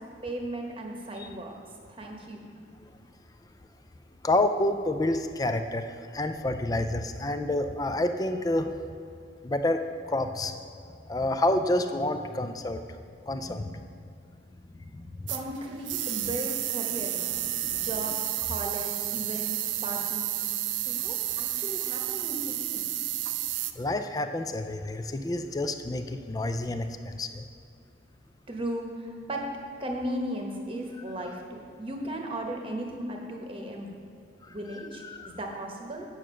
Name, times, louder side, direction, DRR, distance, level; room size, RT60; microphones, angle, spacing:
voice 1, 0.0-1.5 1.9-2.4 15.3-17.4 17.7-19.5 19.8-20.3 20.8-22.9 28.5-29.4 29.8-34.0 34.5-36.1, right 1 dB, 30° right, 1 dB, 1.0 m, -36 dB
voice 2, 4.2-8.7 9.4-10.5 11.1-12.8 13.3-13.9 14.8-15.2 16.9-17.1 17.4-18.1 23.8-27.4 34.4-34.5 35.0-35.4, left 1 dB, 20° left, 8 dB, 0.4 m, -29 dB
sound 1, 15.3-23.7, right 13 dB, 75° right, 0.5 m, -31 dB
8.8 x 6.2 x 6.2 m, 2.4 s
head